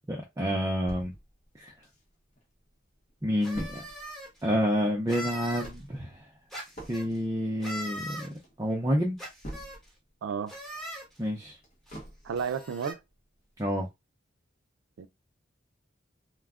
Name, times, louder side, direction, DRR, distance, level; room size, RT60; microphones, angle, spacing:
voice 1, 0.1-1.1 1.6-1.7 3.2-3.8 4.4-6.3 6.9-9.2 11.2-11.6 13.6-13.9, equal, 20° right, 0.5 m, -29 dB
sound 1, 0.9-2.4 2.8-2.9 3.1-10.1 10.5-12.6 13.1-13.2 13.6-13.7, right 1 dB, 35° left, 0.8 m, -46 dB
sound 2, 3.4-4.3 5.1-5.7 6.5-7.1 7.6-8.3 9.2-9.8 10.5-11.1 11.9-12.0 12.3-12.9, equal, ahead, 1.1 m, -40 dB
voice 2, 10.2-10.5 12.2-13.0 15.0-15.1, right 6 dB, 80° right, 0.4 m, -32 dB
2.3 x 2.0 x 3.5 m
head